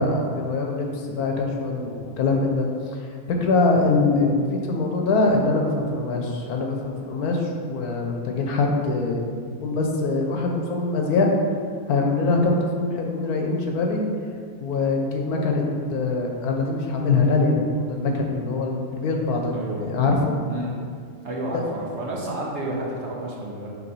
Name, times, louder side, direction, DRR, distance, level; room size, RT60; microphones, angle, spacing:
voice 1, 0.0-2.7 3.4-9.3 9.6-11.3 11.9-14.0 14.6-15.6 15.9-20.4 21.5-21.6, left 3 dB, 80° left, 1 dB, 1.3 m, -23 dB
voice 2, 19.5-19.9 20.5-20.7 21.2-23.7, right 1 dB, 55° right, -3 dB, 1.0 m, -30 dB
6.1 x 3.1 x 5.5 m, 2.1 s
omnidirectional pair, 1.6 m